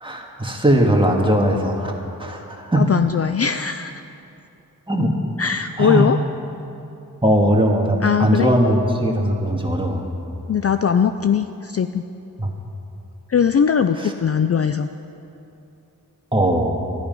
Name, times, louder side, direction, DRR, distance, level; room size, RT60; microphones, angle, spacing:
voice 1, 0.0-1.9 2.2-2.9 4.9-5.1 5.8-6.1 7.2-10.0 12.4-12.5 14.0-14.1 16.3-16.7, equal, 15° right, 0 dB, 1.8 m, -19 dB
voice 2, 2.8-4.0 5.4-6.2 8.0-8.5 10.5-12.0 13.3-14.9, left 7 dB, 40° left, 9 dB, 0.4 m, -20 dB
13.0 x 11.5 x 5.4 m, 2.8 s
cardioid pair, 55°, 36 cm